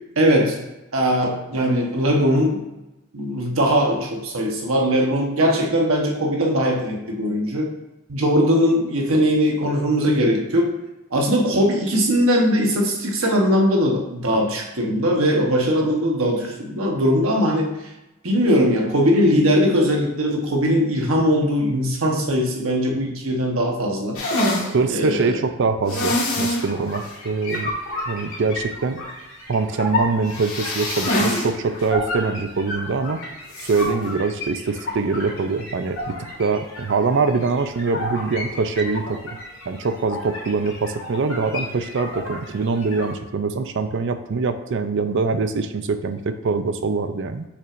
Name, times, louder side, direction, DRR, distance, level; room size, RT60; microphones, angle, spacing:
voice 1, 0.2-0.6 0.9-2.6 3.1-7.7 8.1-10.7 11.1-17.7 18.2-24.2 24.9-25.3, equal, 75° right, 0 dB, 1.2 m, -20 dB
sound 1, 24.1-24.7 25.9-26.6 27.0-27.1 27.5-27.6 30.3-31.5 31.8-31.9 33.5-33.9, left 1 dB, 85° left, 1.7 m, -24 dB
voice 2, 24.7-27.7 28.1-29.0 29.5-33.2 33.6-39.4 39.7-47.5, right 4 dB, 60° right, 9 dB, 0.5 m, -23 dB
sound 2, 26.5-43.1, left 1 dB, 70° left, 2.0 m, -33 dB
6.6 x 5.7 x 2.6 m, 0.99 s
head